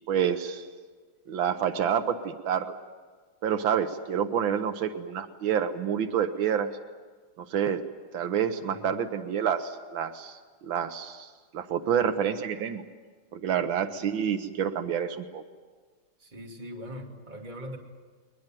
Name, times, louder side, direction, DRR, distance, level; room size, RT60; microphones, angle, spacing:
voice 1, 0.1-0.7 1.3-2.7 3.4-6.7 7.5-7.8 8.1-12.8 13.3-15.4, right 8 dB, 85° right, 9 dB, 1.8 m, -28 dB
voice 2, 16.2-17.8, equal, 25° right, 1 dB, 2.8 m, -41 dB
21.5 x 20.5 x 9.2 m, 1.5 s
omnidirectional pair, 2.1 m